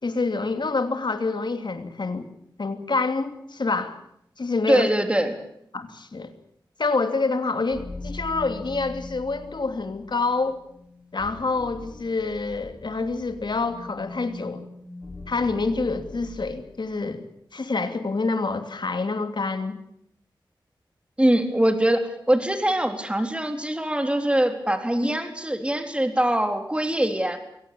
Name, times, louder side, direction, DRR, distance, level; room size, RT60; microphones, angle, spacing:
voice 1, 0.0-2.3 2.6-4.0 4.4-4.9 5.7-6.3 6.8-10.6 11.1-14.6 15.3-17.3 17.5-19.8, left 3 dB, 60° left, 8 dB, 2.8 m, -27 dB
voice 2, 4.7-5.3 21.2-27.4, right 1 dB, 15° right, 7 dB, 3.7 m, -23 dB
sound 1, 7.7-16.9, left 2 dB, 45° left, 5.3 m, -41 dB
23.5 x 17.5 x 8.7 m, 0.74 s
wide cardioid pair, 60°, 9 cm